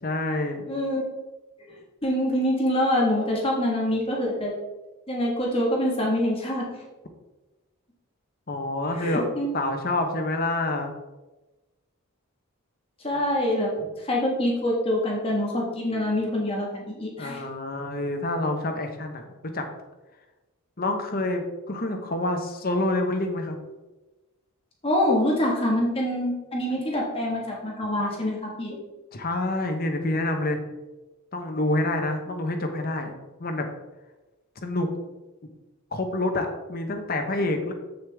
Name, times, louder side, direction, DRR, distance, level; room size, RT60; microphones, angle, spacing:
voice 1, 0.0-0.6 8.5-9.2 9.5-10.9 13.8-13.9 17.2-19.7 20.8-23.6 29.1-30.6 31.3-33.1 33.4-33.7 34.6-34.9 35.9-37.7, left 2 dB, 40° left, 5 dB, 0.9 m, -27 dB
voice 2, 0.6-1.0 1.7-4.5 5.1-6.7 9.0-9.5 13.0-13.7 14.0-17.4 24.8-28.8, left 1 dB, 25° left, -2 dB, 1.5 m, -25 dB
7.6 x 6.7 x 3.5 m, 1.1 s
head